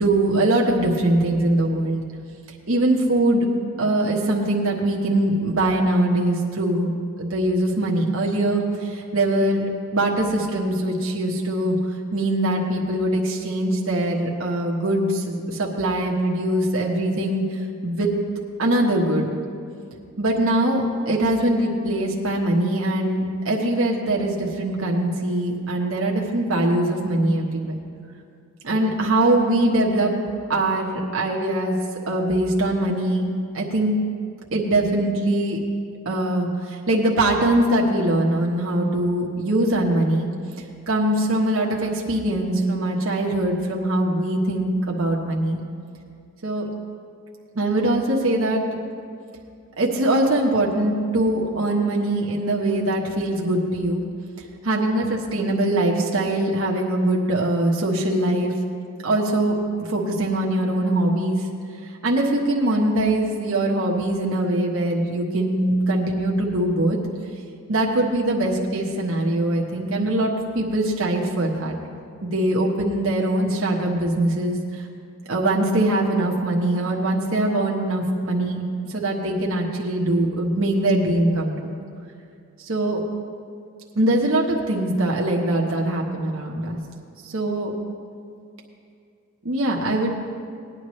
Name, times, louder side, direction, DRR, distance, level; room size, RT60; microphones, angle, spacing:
voice 1, 0.0-2.0 2.7-3.5 3.8-9.6 9.9-11.8 12.1-17.4 17.8-18.1 18.6-19.3 20.2-27.8 28.6-30.1 30.5-31.8 32.1-33.2 33.5-34.0 34.5-35.6 36.0-40.3 40.9-45.6 46.4-46.7 47.5-48.6 49.8-54.0 54.6-58.5 59.0-59.6 59.9-61.4 62.0-67.0 67.7-70.3 70.5-71.7 72.2-74.8 75.3-78.6 78.9-81.8 82.6-83.0 83.9-86.8 87.2-87.7 89.4-90.1, right 1 dB, 65° right, -2 dB, 1.3 m, -22 dB
19.0 x 10.0 x 3.2 m, 2.4 s
head